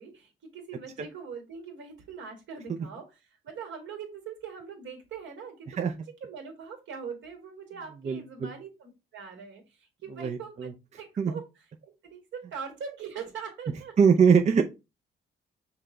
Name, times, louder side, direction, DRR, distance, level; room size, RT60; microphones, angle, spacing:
voice 1, 0.0-3.0 3.4-9.6 10.0-10.7 11.0-11.4 11.8-13.9, right 6 dB, 70° right, 3 dB, 1.8 m, -42 dB
voice 2, 8.0-8.5 10.2-10.7 11.2-11.3 14.0-14.6, right 6 dB, 35° right, 4 dB, 0.5 m, -22 dB
5.7 x 2.3 x 3.7 m, 0.26 s
cardioid pair, 90°, 20 cm